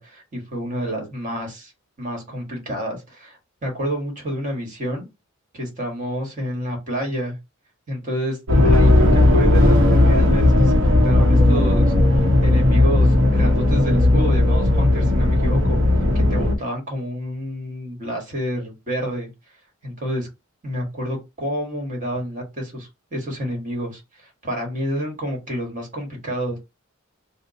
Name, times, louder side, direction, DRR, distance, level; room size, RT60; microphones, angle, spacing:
voice 1, 0.0-1.7 2.0-5.0 5.5-7.4 7.9-8.4 8.6-15.8 16.3-19.3 19.8-20.3 20.6-26.6, equal, 40° right, 1 dB, 1.3 m, -29 dB
sound 1, 8.5-16.5, left 1 dB, 65° right, 0.8 m, -16 dB
2.9 x 2.0 x 3.9 m, 0.24 s
head